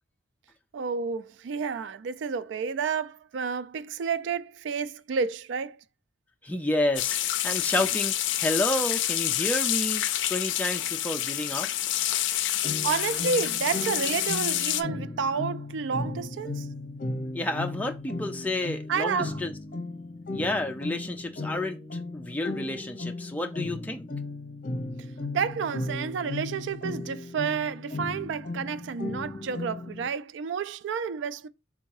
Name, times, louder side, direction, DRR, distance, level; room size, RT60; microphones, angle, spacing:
voice 1, 0.7-5.8 12.8-16.7 18.9-19.4 25.3-31.5, right 6 dB, 80° right, 0.3 m, -30 dB
voice 2, 6.4-11.7 17.3-19.5 20.3-24.1, left 1 dB, 10° left, 0.3 m, -30 dB
sound 1, 7.0-14.8, left 13 dB, 85° left, 0.4 m, -28 dB
sound 2, 12.6-30.1, left 2 dB, 45° left, 0.7 m, -36 dB
3.7 x 2.7 x 4.6 m
head